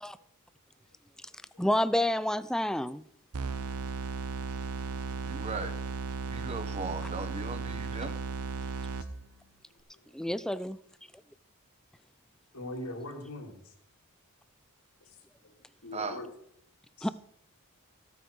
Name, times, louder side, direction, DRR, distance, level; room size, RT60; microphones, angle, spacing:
voice 1, 1.6-3.1 10.1-10.8 17.0-17.1, left 1 dB, 5° left, 0.4 m, -29 dB
sound 1, 3.3-9.4, right 5 dB, 80° right, 0.8 m, -36 dB
voice 2, 5.2-5.7 6.3-8.1 15.9-16.2, right 3 dB, 30° right, 1.3 m, -37 dB
voice 3, 12.5-13.7 15.4-15.5 15.8-16.3 17.0-17.1, left 1 dB, 80° left, 3.1 m, -41 dB
14.5 x 9.3 x 4.7 m
head